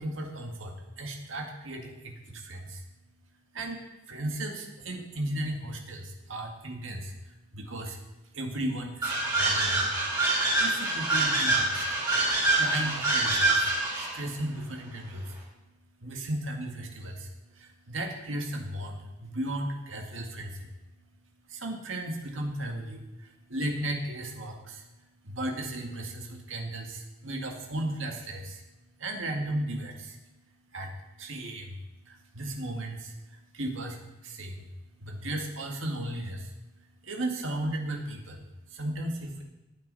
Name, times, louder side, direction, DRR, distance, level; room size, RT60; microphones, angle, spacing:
voice 1, 0.0-2.9 3.3-10.0 10.6-39.4, right 1 dB, 70° right, 2 dB, 2.0 m, -36 dB
sound 1, 9.0-14.2, right 2 dB, 20° right, 4.1 m, -26 dB
15.0 x 9.5 x 4.1 m, 1.0 s
head